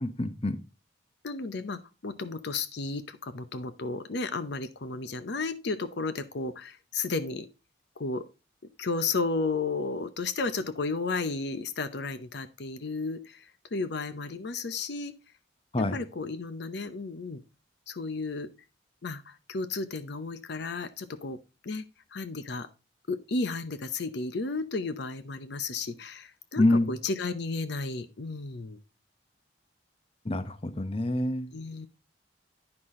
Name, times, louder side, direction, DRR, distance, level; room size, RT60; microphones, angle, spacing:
voice 1, 0.0-0.6 15.7-16.0 26.6-26.9 30.2-31.5, left 1 dB, 30° left, 12 dB, 0.8 m, -26 dB
voice 2, 1.2-7.5 8.0-8.2 8.8-15.1 15.8-17.4 17.9-18.5 19.0-21.4 21.6-21.8 22.1-22.7 23.1-28.8 31.5-31.9, left 3 dB, 60° left, 12 dB, 0.7 m, -33 dB
9.7 x 6.0 x 3.6 m, 0.28 s
head